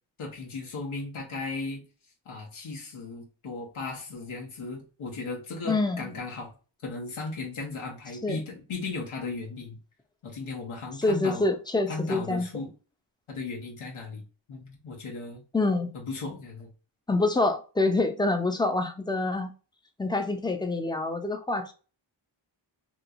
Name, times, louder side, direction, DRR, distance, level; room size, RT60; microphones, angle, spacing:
voice 1, 0.2-1.8 2.2-6.5 6.8-9.8 10.2-11.5 11.9-12.7 13.3-14.2 14.5-15.4 15.9-16.7, left 3 dB, 85° left, -2 dB, 1.1 m, -36 dB
voice 2, 5.6-6.1 8.2-8.4 11.0-12.5 15.5-15.9 17.1-19.5 20.0-21.7, left 2 dB, 10° left, 7 dB, 0.4 m, -26 dB
3.1 x 3.0 x 2.4 m, 0.34 s
wide cardioid pair, 100°, 48 cm